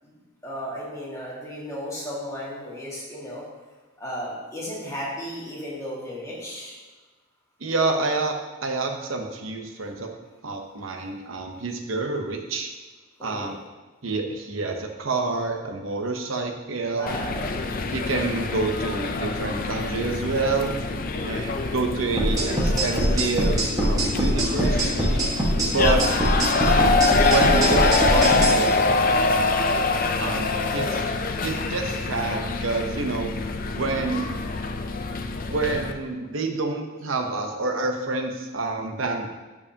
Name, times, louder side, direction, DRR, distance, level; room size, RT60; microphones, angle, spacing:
voice 1, 0.4-3.4 4.0-6.8 13.2-13.5 16.9-17.6 21.0-21.3 24.7-24.9 25.8-26.0, equal, 15° left, -6 dB, 1.9 m, -34 dB
voice 2, 7.6-10.1 10.4-12.7 13.2-13.6 14.0-17.1 17.9-20.7 21.2-25.2 25.6-26.2 26.7-27.0 27.3-29.5 30.2-31.1 31.4-33.3 33.7-34.3 35.5-39.3, right 3 dB, 80° right, 4 dB, 0.9 m, -28 dB
sound 1, 17.1-35.9, left 3 dB, 45° left, 0.5 m, -25 dB
sound 2, 22.2-28.5, right 1 dB, 15° right, 1.4 m, -22 dB
12.0 x 4.8 x 2.9 m, 1.3 s
head